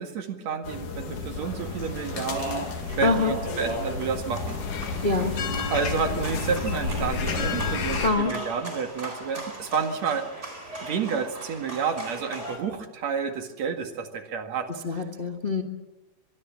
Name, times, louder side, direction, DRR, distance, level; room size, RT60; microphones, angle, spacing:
voice 1, 0.0-2.7 3.0-4.6 5.7-10.2 10.8-14.7 15.0-15.1, right 6 dB, 60° right, 6 dB, 3.1 m, -30 dB
sound 1, 0.6-8.1, left 4 dB, 90° left, 3.9 m, -31 dB
sound 2, 1.3-12.6, right 1 dB, 20° right, 4.6 m, -41 dB
Speech, 1.9-6.1 6.8-7.7, right 1 dB, 90° right, 8.5 m, -38 dB
voice 2, 3.0-3.3 5.0-5.4 8.0-8.3 14.7-15.6, left 3 dB, 30° left, 4 dB, 1.1 m, -25 dB
24.0 x 22.5 x 7.4 m, 1.1 s
omnidirectional pair, 3.5 m